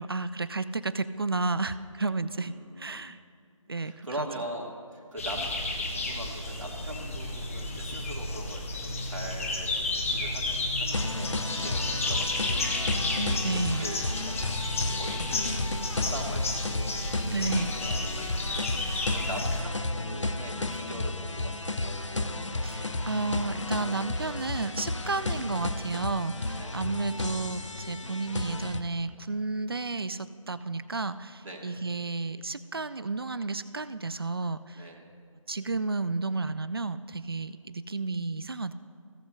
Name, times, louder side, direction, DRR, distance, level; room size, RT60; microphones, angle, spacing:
voice 1, 0.0-3.2 3.7-4.3 13.1-13.9 17.3-17.8 22.6-34.9 35.5-38.7, right 3 dB, 45° right, 14 dB, 0.4 m, -32 dB
voice 2, 2.4-3.0 3.7-5.5 5.8-21.8 26.6-26.8 31.4-31.7 34.8-35.0, right 1 dB, 75° right, -2 dB, 2.6 m, -42 dB
sound 1, 5.2-19.6, left 2 dB, 25° left, 0.9 m, -32 dB
sound 2, 10.9-28.8, left 2 dB, 65° left, 0.8 m, -33 dB
17.0 x 7.7 x 2.6 m, 2.3 s
figure-of-eight pair, 155°, 17 cm